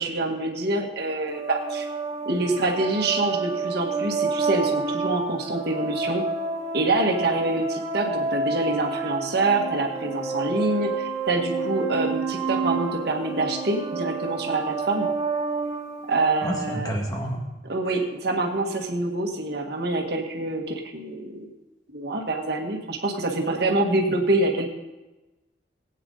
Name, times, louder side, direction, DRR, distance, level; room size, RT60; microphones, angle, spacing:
voice 1, 0.0-1.9 2.2-6.2 6.7-15.1 16.1-16.9 17.6-21.5 21.9-24.7, right 2 dB, 60° right, 2 dB, 1.7 m, -26 dB
sound 1, 1.3-16.7, right 3 dB, 35° right, 2.1 m, -29 dB
voice 2, 16.4-17.4, equal, 20° left, 0 dB, 2.0 m, -29 dB
18.5 x 9.1 x 4.0 m, 1.1 s
head